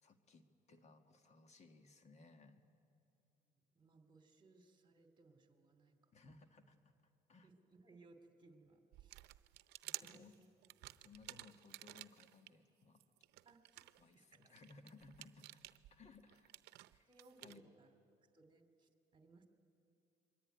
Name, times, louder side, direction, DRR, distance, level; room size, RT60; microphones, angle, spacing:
voice 1, 0.0-2.6 6.1-7.5 10.0-10.4 11.0-13.1 14.0-15.6 15.9-16.6 16.9-17.1 17.4-17.7, left 3 dB, 40° left, 7 dB, 1.7 m, -62 dB
voice 2, 3.5-6.1 7.4-9.3 9.8-10.5 13.4-14.5 17.1-17.9 18.3-19.5, right 3 dB, 30° right, 6 dB, 2.7 m, -66 dB
sound 1, 8.9-12.5 13.0-17.6, right 17 dB, 85° right, 0.7 m, -53 dB
26.5 x 23.0 x 9.3 m, 2.6 s
cardioid pair, 110°, 17 cm